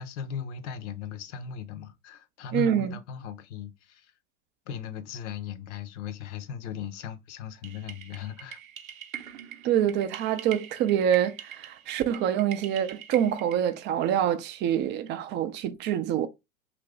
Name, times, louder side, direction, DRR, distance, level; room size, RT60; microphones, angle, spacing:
voice 1, 0.0-4.1 4.7-8.6, left 8 dB, 60° left, 0.7 m, -38 dB
voice 2, 2.5-3.0 9.6-16.3, right 10 dB, 30° right, 0.4 m, -26 dB
sound 1, 7.6-13.8, right 10 dB, 90° right, 0.7 m, -43 dB
2.9 x 2.5 x 3.4 m
hypercardioid pair, 105°, 40 cm